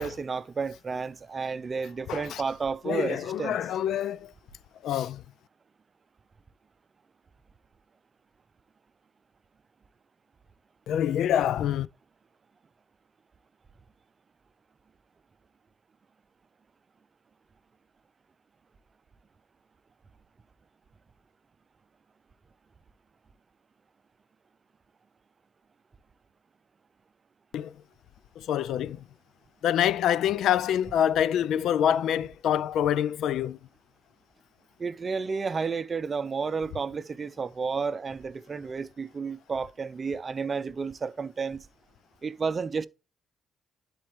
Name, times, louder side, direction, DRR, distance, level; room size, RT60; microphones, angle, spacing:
voice 1, 0.0-3.6 34.8-41.7 42.2-42.9, right 5 dB, 35° right, 0.6 m, -31 dB
voice 2, 2.1-2.4 2.8-4.3 4.8-5.2 10.9-11.9 27.5-27.7 28.4-29.0 29.6-33.6, left 10 dB, 75° left, 0.3 m, -26 dB
11.0 x 4.5 x 3.1 m
cardioid pair, 90°, 0 cm